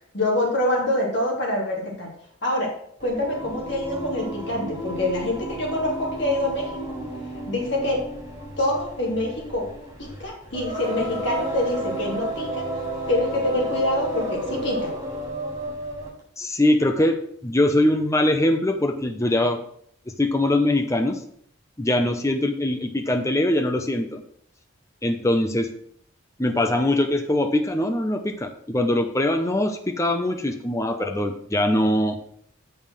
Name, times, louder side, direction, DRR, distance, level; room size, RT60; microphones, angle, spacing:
voice 1, 0.1-2.1 2.4-2.7 3.0-7.0 7.5-8.0 8.6-9.7 10.0-12.6 13.1-14.9, left 1 dB, 55° left, -2 dB, 3.0 m, -25 dB
Singing, 3.0-16.2, right 1 dB, 20° right, 3.7 m, -32 dB
voice 2, 16.4-19.6 20.1-21.2 21.8-24.2 25.0-25.7 26.4-32.2, left 1 dB, 15° left, 5 dB, 0.7 m, -22 dB
7.1 x 5.6 x 6.2 m, 0.63 s
head